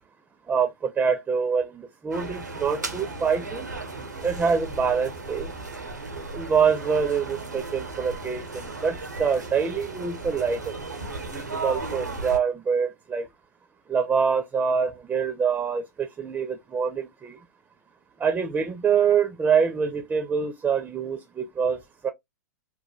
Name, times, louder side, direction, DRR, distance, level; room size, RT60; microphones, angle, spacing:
voice 1, 0.5-3.7 4.2-5.5 6.3-10.7 11.3-13.3 13.9-17.4 18.2-22.1, right 6 dB, 15° right, 0.5 m, -25 dB
sound 1, 2.1-12.4, right 3 dB, 90° right, 0.8 m, -35 dB
3.1 x 2.2 x 2.2 m
figure-of-eight pair, 105°, 9 cm